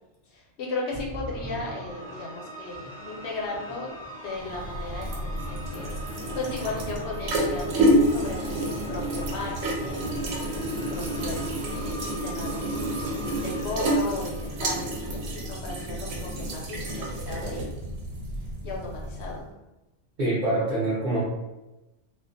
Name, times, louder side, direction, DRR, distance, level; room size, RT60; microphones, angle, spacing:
voice 1, 0.3-17.8 18.6-19.5, left 2 dB, 70° left, -3 dB, 0.9 m, -36 dB
sound 1, 0.9-15.3, equal, 40° left, 0.7 m, -41 dB
sound 2, 4.4-19.4, right 1 dB, 80° right, 0.9 m, -29 dB
voice 2, 20.2-21.2, right 2 dB, 50° right, -9 dB, 0.7 m, -25 dB
2.4 x 2.0 x 2.5 m, 1.0 s
omnidirectional pair, 1.2 m